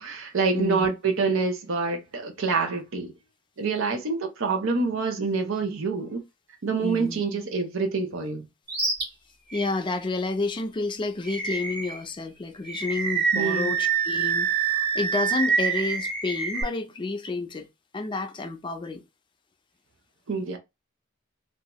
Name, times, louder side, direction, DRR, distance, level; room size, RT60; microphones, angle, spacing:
voice 1, 0.0-3.1 3.6-6.2 6.6-8.5 13.3-13.7 20.3-20.6, right 4 dB, 65° right, 0.6 m, -26 dB
voice 2, 0.5-0.9 6.8-7.2 9.5-17.7 17.9-19.0, left 3 dB, 25° left, 0.4 m, -30 dB
Animal, 8.7-9.0 9.5-9.7 11.3-12.0 12.7-16.6, right 5 dB, 50° right, 1.4 m, -26 dB
2.7 x 2.3 x 2.9 m
head